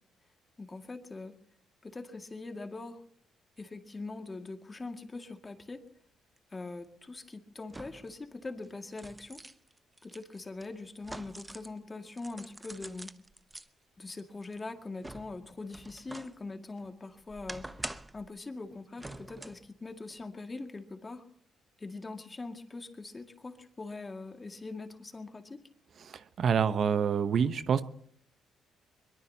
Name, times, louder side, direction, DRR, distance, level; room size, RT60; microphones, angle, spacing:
voice 1, 0.6-1.3 1.8-3.0 3.6-5.8 6.5-9.4 10.0-13.1 14.0-21.2 21.8-25.6, left 3 dB, 25° left, 5 dB, 2.1 m, -42 dB
sound 1, 6.4-6.5 7.7-8.2 8.6-11.8 12.1-13.7 14.2-16.4 16.8-18.3 19.0-19.7 20.1-20.2, right 2 dB, 15° right, 0.8 m, -46 dB
voice 2, 26.1-27.8, right 7 dB, 60° right, 12 dB, 0.9 m, -27 dB
22.5 x 22.0 x 2.9 m, 0.65 s
cardioid pair, 90°, 0 cm